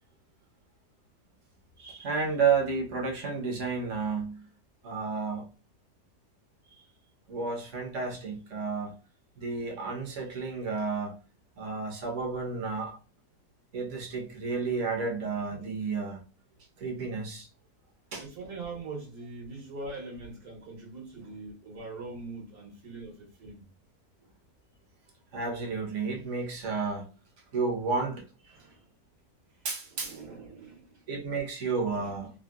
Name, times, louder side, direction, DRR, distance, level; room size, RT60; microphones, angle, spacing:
voice 1, 1.8-4.4 4.8-5.5 7.3-8.9 9.4-11.1 11.6-13.0 13.7-16.2 16.8-17.5 18.1-18.2 25.3-27.1 27.5-28.2 29.6-30.2 31.1-32.3, right 4 dB, 55° right, 1.1 m, -31 dB
voice 2, 18.2-23.6 28.5-28.8 29.9-31.0 31.9-32.2, right 3 dB, 75° right, 1.6 m, -42 dB
3.6 x 2.2 x 2.2 m
omnidirectional pair, 1.7 m